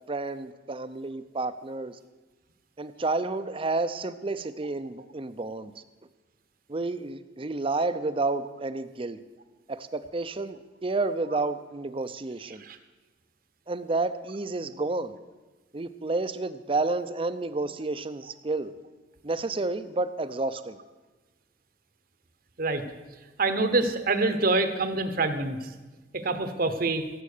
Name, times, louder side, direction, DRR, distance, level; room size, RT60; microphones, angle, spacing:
voice 1, 0.1-2.0 2.8-5.7 6.7-9.2 9.7-12.6 13.7-15.2 15.7-18.7 19.2-20.8, right 3 dB, 30° right, 12 dB, 0.6 m, -30 dB
voice 2, 23.4-25.6 26.1-27.0, right 3 dB, 55° right, 9 dB, 1.0 m, -26 dB
16.5 x 7.5 x 6.7 m, 1.2 s
head